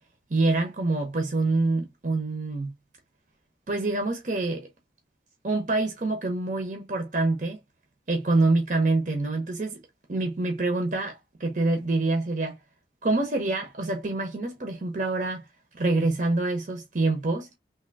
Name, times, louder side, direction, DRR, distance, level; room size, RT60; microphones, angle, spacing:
voice 1, 0.3-2.7 3.7-4.7 5.4-7.6 8.1-9.8 10.1-12.6 13.0-15.5 15.7-17.5, right 2 dB, 45° right, 0.8 m, -26 dB
3.4 x 2.6 x 2.6 m
head